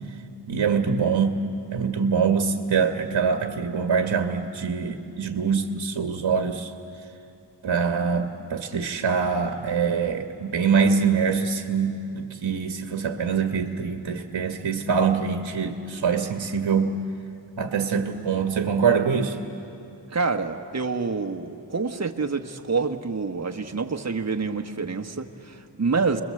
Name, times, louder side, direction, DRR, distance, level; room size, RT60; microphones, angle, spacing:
voice 1, 0.5-1.4 1.7-6.7 7.6-17.0 17.6-19.4, right 6 dB, 60° right, 5 dB, 1.4 m, -24 dB
voice 2, 20.1-26.2, right 4 dB, 35° right, 4 dB, 1.3 m, -27 dB
29.5 x 21.5 x 7.8 m, 2.6 s
wide cardioid pair, 110°, 45 cm